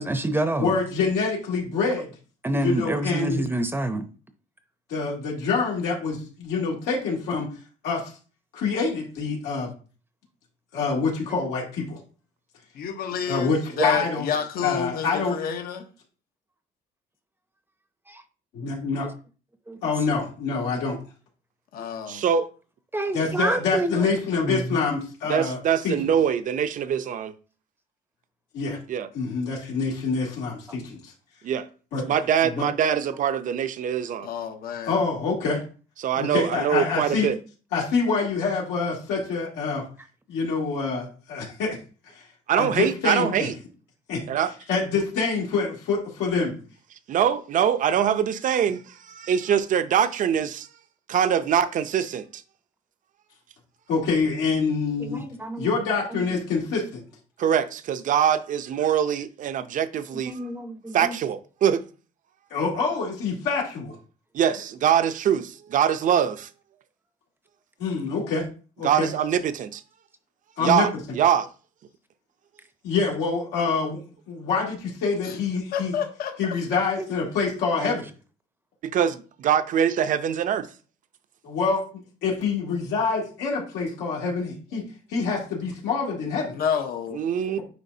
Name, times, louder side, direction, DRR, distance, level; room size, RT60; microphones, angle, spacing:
voice 1, 0.0-0.7 2.4-4.0 18.1-18.2 19.7-19.8 22.9-24.1 24.4-24.8 55.0-55.7 56.1-56.2 60.3-61.2 77.8-77.9, right 1 dB, 15° right, 0.7 m, -27 dB
voice 2, 0.6-2.1 2.6-3.4 4.9-7.5 7.8-8.1 8.5-9.7 10.7-12.0 13.3-14.3 14.6-15.4 18.5-19.1 19.8-21.0 23.1-25.6 25.8-25.9 28.5-28.8 29.1-31.0 31.9-32.0 32.6-32.7 34.9-35.6 36.1-37.3 37.7-39.8 40.3-41.8 42.6-43.5 44.1-44.2 44.7-46.6 53.9-55.2 55.6-57.0 62.5-63.9 67.8-68.4 68.8-69.1 70.6-70.9 72.8-74.0 74.3-75.9 76.4-78.1 81.4-81.8 82.2-84.8 85.1-86.6, left 4 dB, 90° left, 2.7 m, -26 dB
voice 3, 12.7-15.9 21.7-22.2 34.2-35.0 75.2-75.4 75.7-76.6 86.5-87.5, left 7 dB, 60° left, 1.0 m, -29 dB
voice 4, 22.1-22.5 25.3-27.3 28.9-29.1 31.4-31.7 32.1-34.3 36.0-37.4 42.5-43.5 44.3-44.5 47.1-50.7 51.1-52.4 57.4-60.4 60.9-61.8 64.3-66.5 68.8-69.8 70.6-71.5 78.8-80.7 87.1-87.6, right 9 dB, 50° right, 0.6 m, -23 dB
9.5 x 3.9 x 2.8 m
cardioid pair, 110°, 17 cm